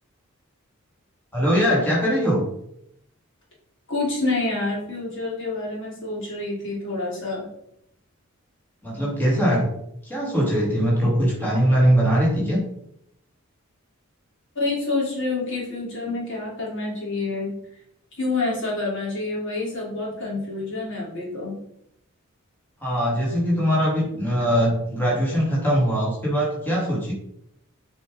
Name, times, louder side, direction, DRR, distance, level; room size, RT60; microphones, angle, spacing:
voice 1, 1.3-2.5 8.8-9.7 10.0-12.6 22.8-27.1, equal, 10° left, -5 dB, 3.0 m, -21 dB
voice 2, 3.9-7.5 14.6-17.5 18.2-21.6, left 3 dB, 60° left, -4 dB, 3.4 m, -27 dB
7.8 x 5.6 x 5.1 m, 0.75 s
head